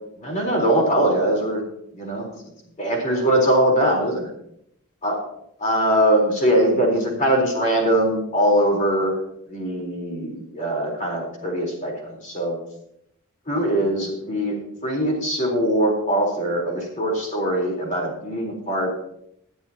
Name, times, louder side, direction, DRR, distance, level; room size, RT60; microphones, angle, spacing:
voice 1, 0.2-1.6 1.9-2.3 2.8-4.3 5.0-5.2 5.6-9.2 9.5-12.6 13.5-18.9, right 1 dB, 35° left, -1 dB, 4.2 m, -22 dB
20.0 x 11.0 x 3.0 m, 0.75 s
head